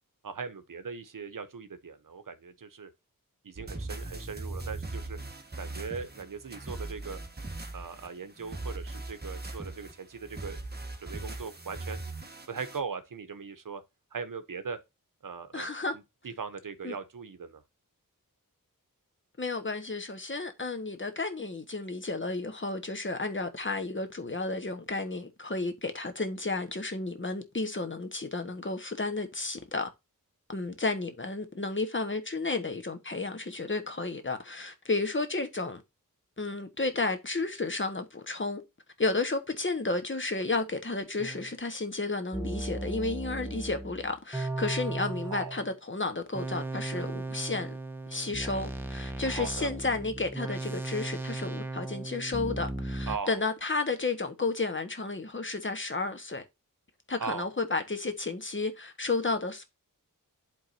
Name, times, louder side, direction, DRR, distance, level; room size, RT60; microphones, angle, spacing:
voice 1, 0.2-2.9 3.4-5.2 5.6-7.2 7.7-10.6 11.0-12.0 12.5-13.8 14.1-14.8 15.2-15.7 15.9-17.6 45.3-45.6 49.3-49.7 53.1-53.4 57.2-57.5, right 5 dB, 65° right, 0.9 m, -39 dB
sound 1, 3.6-12.8, right 2 dB, 30° right, 1.4 m, -40 dB
voice 2, 15.5-15.9 16.8-17.0 19.4-29.9 30.5-35.8 36.4-38.6 39.0-47.8 48.1-56.4 57.1-59.6, left 3 dB, 35° left, 1.3 m, -32 dB
sound 2, 41.2-41.5 42.3-45.7 46.3-53.2, right 2 dB, 5° right, 1.0 m, -36 dB
11.0 x 3.8 x 2.7 m
wide cardioid pair, 55°, 35 cm